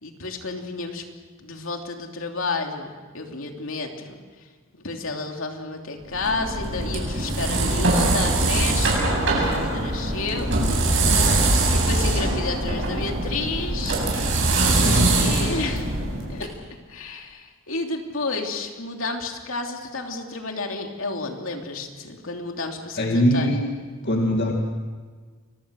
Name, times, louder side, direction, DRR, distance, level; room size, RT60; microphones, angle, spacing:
voice 1, 0.0-1.0 1.4-4.5 4.7-11.0 11.7-14.0 14.6-15.9 16.3-16.5 16.9-23.6, left 3 dB, 65° left, 2 dB, 3.1 m, -31 dB
sound 1, 6.1-16.4, right 2 dB, 60° right, 7.8 m, -22 dB
voice 2, 14.8-15.5 23.0-23.6 24.0-24.5, equal, 50° left, 1 dB, 2.4 m, -22 dB
29.5 x 23.0 x 6.5 m, 1.5 s
head